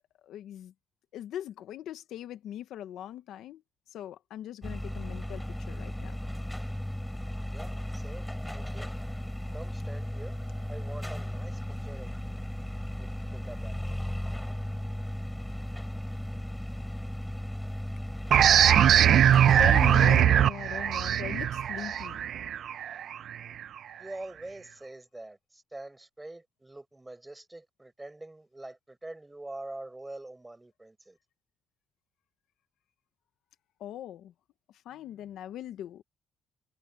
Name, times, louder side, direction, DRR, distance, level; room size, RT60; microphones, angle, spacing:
voice 1, 0.3-0.7 1.1-3.6 3.9-6.1 19.6-22.2 33.8-34.3 34.8-36.0, left 11 dB, 80° left, 1.2 m, -40 dB
sound 1, 4.6-20.2, left 1 dB, 5° left, 3.7 m, -36 dB
voice 2, 7.5-8.3 8.5-8.9 9.5-10.4 10.7-12.4 13.0-14.0 24.0-31.2, right 2 dB, 15° right, 7.9 m, -45 dB
sound 2, 18.3-23.6, right 10 dB, 65° right, 0.7 m, -21 dB
cardioid pair, 105°, 0 cm